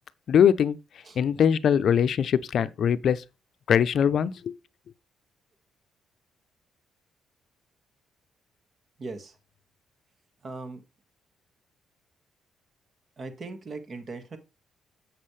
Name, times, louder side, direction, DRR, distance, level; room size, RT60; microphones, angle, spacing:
voice 1, 0.3-0.8 1.2-3.2 3.7-4.6, left 8 dB, 60° left, 0.6 m, -22 dB
voice 2, 9.0-9.4 10.4-10.8 13.2-14.4, right 3 dB, 45° right, 1.8 m, -39 dB
7.5 x 7.3 x 3.3 m
cardioid pair, 90°, 0 cm